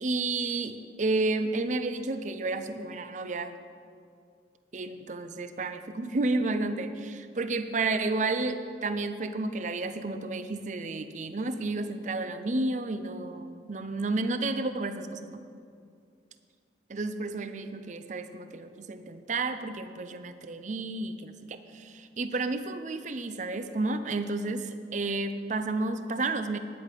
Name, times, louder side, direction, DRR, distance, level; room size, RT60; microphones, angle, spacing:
voice 1, 0.0-3.6 4.7-15.4 16.9-26.6, right 3 dB, 45° right, 10 dB, 0.6 m, -31 dB
10.0 x 8.4 x 8.3 m, 2.3 s
head